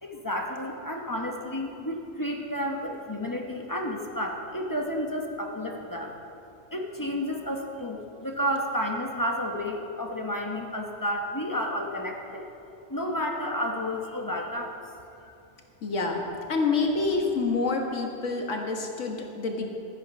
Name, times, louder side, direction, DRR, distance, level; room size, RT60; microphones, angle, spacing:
voice 1, 0.0-6.2 6.7-12.4 12.9-14.8 15.2-15.3, equal, 20° left, 1 dB, 0.9 m, -31 dB
voice 2, 15.8-16.2 16.5-19.7, left 3 dB, 85° left, 2 dB, 1.7 m, -27 dB
12.5 x 9.5 x 5.3 m, 2.8 s
omnidirectional pair, 1.2 m